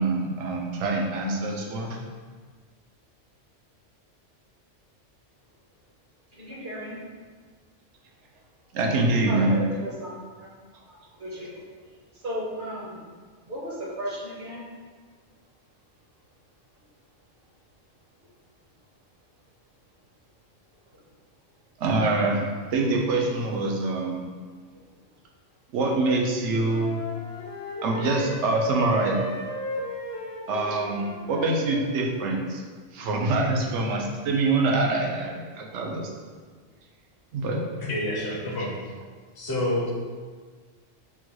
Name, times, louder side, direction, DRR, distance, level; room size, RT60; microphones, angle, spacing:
voice 1, 0.0-2.0 8.7-9.6 21.8-22.4 22.7-24.2 25.7-27.0 27.8-29.2 30.5-32.6 32.9-36.1 37.3-37.6, right 2 dB, 75° right, 0 dB, 0.9 m, -25 dB
voice 2, 6.4-7.0 9.3-10.5 10.9-11.6 12.2-13.0 13.5-14.7, equal, 50° right, -5 dB, 0.9 m, -35 dB
Wind instrument woodwind instrument, 26.5-32.0, left 1 dB, 65° left, 0.9 m, -35 dB
voice 3, 37.9-38.7 39.4-39.9, left 1 dB, 30° left, -4 dB, 0.5 m, -28 dB
3.7 x 2.2 x 2.9 m, 1.5 s
omnidirectional pair, 1.2 m